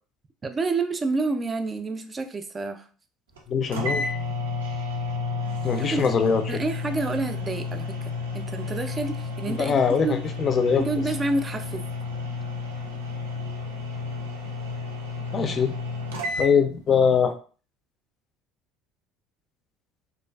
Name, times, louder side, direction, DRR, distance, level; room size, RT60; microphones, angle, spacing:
voice 1, 0.4-2.9 5.8-6.1 6.5-10.2 10.8-11.9, right 3 dB, 30° right, 7 dB, 0.4 m, -29 dB
sound 1, 3.4-3.5 3.7-16.5, left 3 dB, 90° right, 0.4 m, -31 dB
voice 2, 3.5-4.0 5.6-6.4 9.6-10.8 15.3-15.7 16.4-17.3, left 6 dB, 40° left, 7 dB, 0.4 m, -22 dB
2.4 x 2.3 x 2.2 m, 0.40 s
hypercardioid pair, 70°, 0 cm